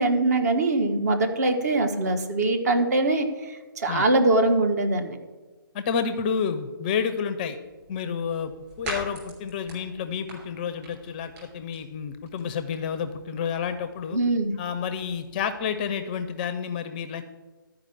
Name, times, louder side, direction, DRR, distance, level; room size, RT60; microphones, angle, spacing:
voice 1, 0.0-5.2 14.1-14.5, right 2 dB, 45° right, 5 dB, 1.3 m, -23 dB
voice 2, 5.7-7.6 7.9-8.5 8.8-14.2 14.6-17.2, left 6 dB, 25° left, 10 dB, 0.5 m, -30 dB
sound 1, 7.6-16.3, right 2 dB, 15° right, 3.1 m, -44 dB
12.0 x 4.9 x 7.7 m, 1.3 s
figure-of-eight pair, 140°, 12 cm